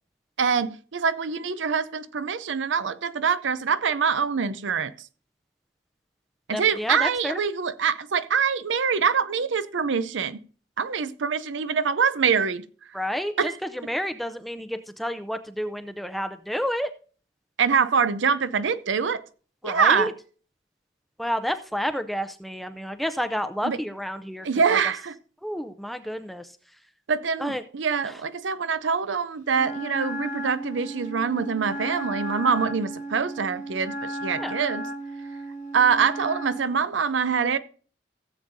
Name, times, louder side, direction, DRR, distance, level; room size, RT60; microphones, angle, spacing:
voice 1, 0.4-4.9 6.5-10.4 10.8-12.6 13.4-13.5 17.6-19.2 19.6-20.1 23.6-23.8 24.4-25.1 27.1-34.8 35.7-37.6, right 6 dB, 85° right, 0.6 m, -24 dB
voice 2, 6.5-7.4 12.9-16.9 19.6-20.1 21.2-24.8 25.4-26.6 27.4-27.6 28.0-28.2 34.4-34.5, equal, ahead, 0.5 m, -30 dB
Wind instrument woodwind instrument, 29.5-36.7, right 1 dB, 40° left, 1.5 m, -34 dB
16.5 x 7.7 x 2.6 m
head